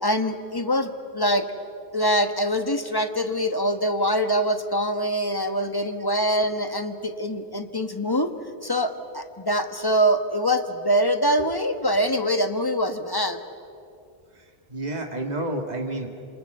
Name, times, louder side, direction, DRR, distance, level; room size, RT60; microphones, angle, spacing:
voice 1, 0.0-1.4 1.9-8.3 8.6-13.4, equal, 20° left, 7 dB, 1.3 m, -24 dB
voice 2, 14.3-16.2, right 1 dB, 40° right, 3 dB, 2.2 m, -31 dB
28.0 x 26.5 x 6.8 m, 2.4 s
omnidirectional pair, 1.1 m